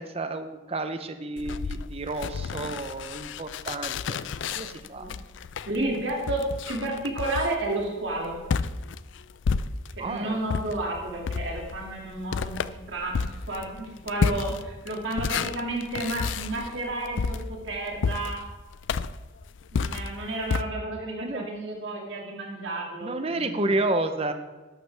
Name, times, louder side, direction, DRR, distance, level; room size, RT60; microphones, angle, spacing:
voice 1, 0.0-4.2 4.5-5.0 10.0-10.4 21.2-21.5 23.0-24.3, right 2 dB, 30° right, 8 dB, 0.7 m, -30 dB
sound 1, 1.4-10.1 10.5-20.6, left 5 dB, 65° left, 0.4 m, -31 dB
voice 2, 4.5-5.1 5.7-8.4 10.0-18.4 19.7-23.7, right 2 dB, 65° right, -1 dB, 2.3 m, -32 dB
12.5 x 11.5 x 3.4 m, 1.2 s
head